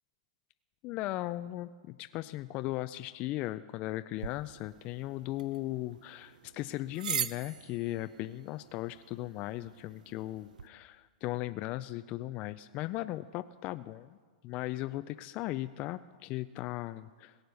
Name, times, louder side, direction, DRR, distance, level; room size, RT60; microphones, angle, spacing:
voice 1, 0.8-14.2 14.4-17.4, left 16 dB, 35° left, 12 dB, 0.3 m, -37 dB
sound 1, 4.2-10.7, right 8 dB, 90° right, 0.5 m, -42 dB
17.5 x 8.0 x 6.9 m, 1.5 s
hypercardioid pair, 145°, 4 cm